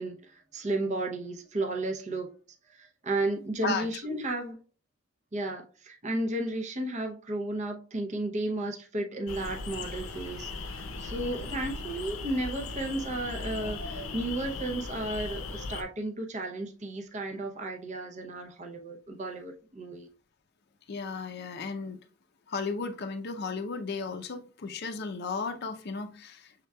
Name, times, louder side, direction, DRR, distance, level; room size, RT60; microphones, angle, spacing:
voice 1, 0.0-2.3 2.7-4.6 5.3-20.1, right 2 dB, 35° right, 0.6 m, -33 dB
voice 2, 3.6-4.2 20.9-22.0 22.5-26.7, left 4 dB, 50° left, 0.5 m, -35 dB
sound 1, 9.3-15.8, left 3 dB, 85° left, 0.7 m, -38 dB
6.6 x 3.6 x 2.2 m
head